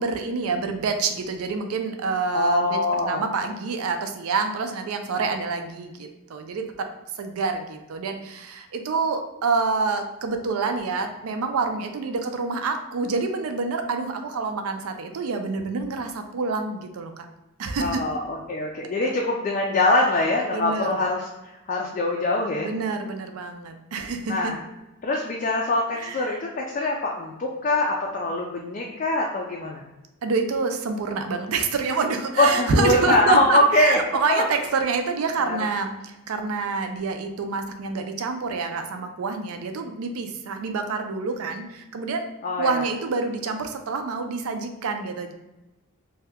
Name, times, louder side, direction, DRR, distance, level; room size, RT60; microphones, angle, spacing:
voice 1, 0.0-2.8 3.0-6.9 7.2-17.3 17.6-18.0 19.0-19.1 20.5-20.9 22.6-24.5 25.9-26.4 30.2-42.2 42.6-45.3, right 4 dB, 85° right, 6 dB, 0.4 m, -27 dB
voice 2, 2.3-3.2 17.8-22.7 24.3-24.6 25.0-29.8 32.4-34.0 34.3-34.4 35.4-35.6 42.4-42.8, left 2 dB, 35° left, -1 dB, 0.3 m, -23 dB
2.7 x 2.2 x 3.4 m, 1.0 s
head